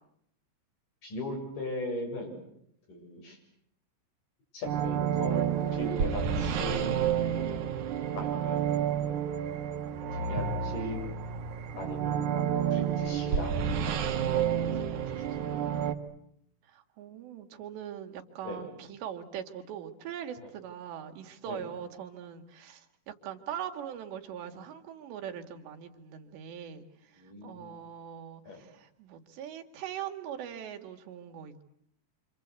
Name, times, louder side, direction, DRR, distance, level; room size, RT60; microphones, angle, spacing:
voice 1, 1.0-2.4 2.9-3.4 4.5-7.2 8.2-9.2 10.2-11.0 11.8-12.4 12.7-13.5 13.8-14.8 15.1-15.6 18.4-18.6 21.5-21.7 27.1-27.8 28.5-28.6, left 1 dB, 50° left, 0 dB, 8.7 m, -39 dB
sound 1, 4.6-15.9, right 8 dB, 60° right, 2.2 m, -30 dB
voice 2, 16.7-31.6, right 9 dB, 80° right, 5 dB, 4.1 m, -41 dB
27.0 x 27.0 x 8.2 m, 0.72 s
omnidirectional pair, 4.9 m